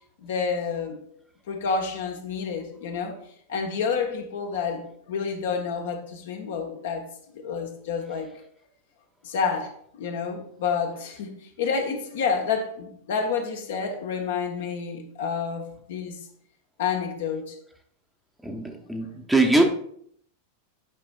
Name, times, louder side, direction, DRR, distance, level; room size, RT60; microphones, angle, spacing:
voice 1, 0.2-1.0 1.5-3.2 3.5-7.0 7.3-8.3 9.2-16.2 16.8-17.5, left 5 dB, 60° left, 4 dB, 1.0 m, -29 dB
voice 2, 18.4-19.6, right 2 dB, 5° right, 2 dB, 0.8 m, -22 dB
10.0 x 5.1 x 2.3 m, 0.65 s
figure-of-eight pair, 90°, 0 cm